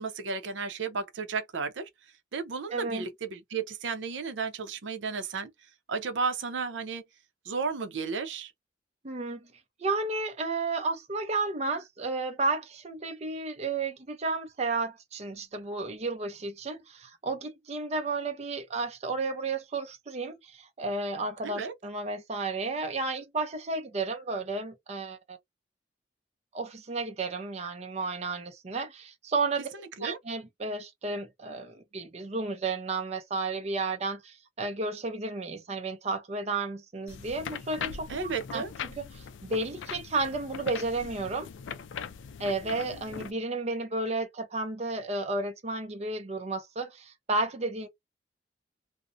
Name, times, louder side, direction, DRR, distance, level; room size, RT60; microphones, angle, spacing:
voice 1, 0.0-1.9 2.3-5.5 5.9-7.0 7.5-8.5 21.4-21.7 30.0-30.2 38.1-38.7, right 5 dB, 80° right, 0.6 m, -33 dB
voice 2, 2.7-3.1 9.0-9.5 9.8-25.4 26.5-29.7 30.0-38.6 39.0-41.5 42.4-47.9, right 3 dB, 35° right, 0.5 m, -32 dB
sound 1, 37.1-43.3, left 7 dB, 90° left, 0.4 m, -41 dB
2.5 x 2.1 x 2.5 m
head